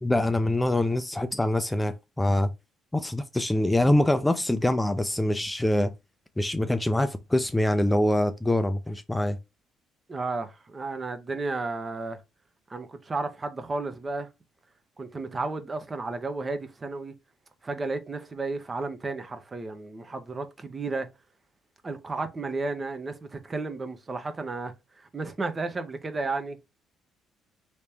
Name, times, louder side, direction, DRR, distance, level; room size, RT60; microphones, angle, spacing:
voice 1, 0.0-2.5 2.9-5.9 6.4-9.4, left 1 dB, 10° left, 0.5 m, -24 dB
voice 2, 10.1-12.2 12.7-14.3 15.0-17.1 17.6-21.1 21.8-26.6, right 3 dB, 30° right, 0.8 m, -33 dB
3.2 x 2.9 x 3.3 m
hypercardioid pair, 55°, 0 cm